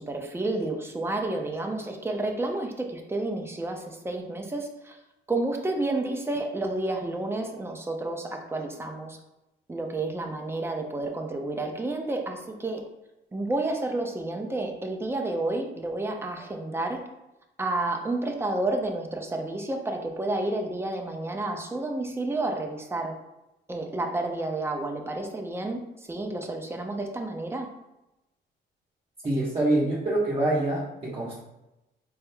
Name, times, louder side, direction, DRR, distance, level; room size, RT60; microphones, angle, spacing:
voice 1, 0.0-5.0 5.3-9.2 9.7-12.8 13.3-17.0 17.6-23.2 23.7-25.8 26.1-27.7, right 2 dB, 10° right, 2 dB, 0.7 m, -30 dB
voice 2, 29.2-31.4, right 1 dB, 30° right, -8 dB, 1.1 m, -25 dB
4.3 x 4.1 x 2.3 m, 0.94 s
cardioid pair, 90°, 20 cm